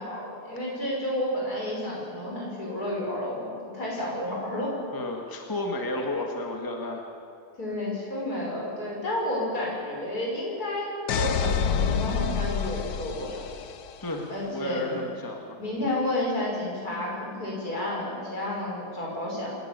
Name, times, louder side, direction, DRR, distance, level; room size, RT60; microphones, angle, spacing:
voice 1, 0.0-4.7 7.6-10.9 11.2-13.4 14.3-15.0 15.6-19.5, left 1 dB, 60° left, -3 dB, 6.5 m, -31 dB
voice 2, 4.9-7.0 14.0-15.6, left 1 dB, 10° left, 1 dB, 1.8 m, -32 dB
sound 1, 11.1-14.0, left 7 dB, 80° left, 1.6 m, -27 dB
26.0 x 12.0 x 9.9 m, 2.4 s
omnidirectional pair, 1.8 m